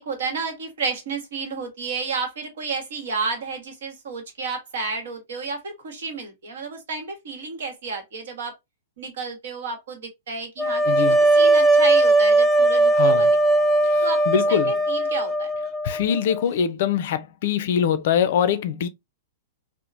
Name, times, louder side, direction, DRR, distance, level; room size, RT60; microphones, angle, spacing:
voice 1, 0.0-8.5 9.0-13.3 13.6-13.7 14.0-15.5, right 4 dB, 65° right, 1.0 m, -31 dB
sound 1, 10.6-16.5, right 2 dB, 10° right, 0.4 m, -19 dB
voice 2, 10.9-11.2 12.9-13.3 13.8-14.7 15.8-18.9, left 8 dB, 60° left, 0.4 m, -23 dB
2.9 x 2.0 x 2.4 m
hypercardioid pair, 110°, 0 cm